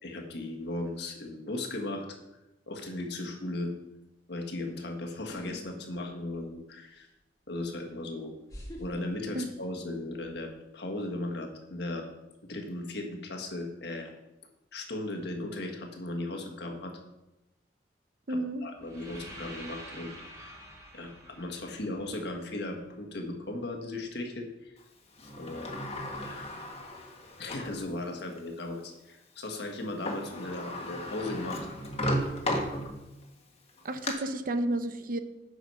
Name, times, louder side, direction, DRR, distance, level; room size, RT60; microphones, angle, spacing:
voice 1, 0.0-2.2 2.7-3.7 4.3-7.1 7.5-8.3 8.8-12.1 12.4-14.2 14.7-17.0 18.3-20.6 20.9-24.8 25.4-25.7 26.2-26.5 27.4-31.7, left 2 dB, 65° left, 3 dB, 1.6 m, -37 dB
sound 1, 5.3-5.6 6.0-6.6 7.6-7.7 8.5-9.9 10.2-10.6, equal, 20° left, 2.1 m, -45 dB
voice 2, 18.3-18.6 33.8-35.2, right 1 dB, 50° right, 9 dB, 0.8 m, -31 dB
sound 2, 18.8-22.8, right 1 dB, 20° right, 2.9 m, -47 dB
Sliding door, 25.2-27.8 28.4-28.5 29.8-29.9 30.0-33.2 33.7-34.1, equal, 35° left, 1.5 m, -34 dB
9.4 x 6.4 x 5.6 m, 0.96 s
head